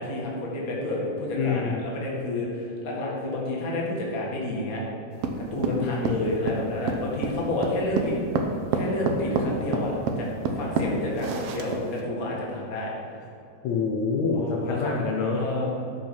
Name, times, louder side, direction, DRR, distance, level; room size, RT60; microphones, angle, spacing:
voice 1, 0.0-4.8 5.5-8.2 8.7-10.3 10.6-12.9 14.4-15.0 15.3-15.7, left 2 dB, 30° left, -3 dB, 2.0 m, -30 dB
voice 2, 1.4-1.8 5.8-6.2 13.6-15.4, left 4 dB, 70° left, -1 dB, 2.1 m, -26 dB
sound 1, 5.2-12.0, right 4 dB, 70° right, 1.6 m, -28 dB
12.0 x 6.0 x 5.9 m, 2.7 s
omnidirectional pair, 3.6 m